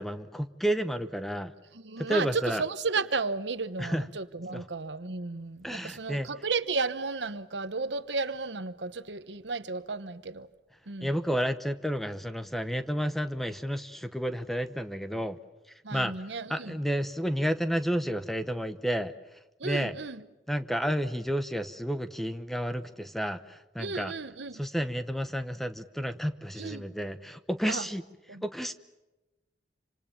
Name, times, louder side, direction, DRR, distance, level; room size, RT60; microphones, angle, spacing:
voice 1, 0.0-1.5 2.0-2.6 3.8-4.1 4.5-4.6 5.6-6.3 11.0-15.4 15.9-16.1 16.5-19.1 19.6-19.9 20.5-24.1 24.5-28.0 28.4-28.7, equal, ahead, 0.9 m, -31 dB
voice 2, 1.7-10.5 10.9-11.1 15.8-16.7 19.6-20.2 23.8-24.6 26.6-26.8 27.7-27.9 28.3-28.4, right 4 dB, 75° right, 1.1 m, -33 dB
27.5 x 26.0 x 7.1 m
head